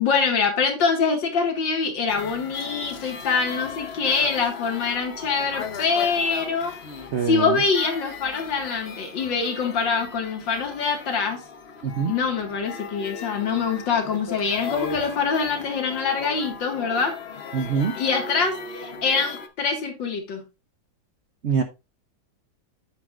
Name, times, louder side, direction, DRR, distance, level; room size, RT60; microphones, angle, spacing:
voice 1, 0.0-6.7 7.3-11.4 12.1-17.1 17.9-20.4, left 5 dB, 70° left, 2.5 m, -24 dB
sound 1, 2.1-19.5, left 5 dB, 40° left, 1.0 m, -37 dB
voice 2, 7.1-7.6 11.8-12.1 17.5-18.0 21.4-21.6, right 6 dB, 65° right, 0.6 m, -24 dB
9.2 x 8.3 x 2.5 m
omnidirectional pair, 2.1 m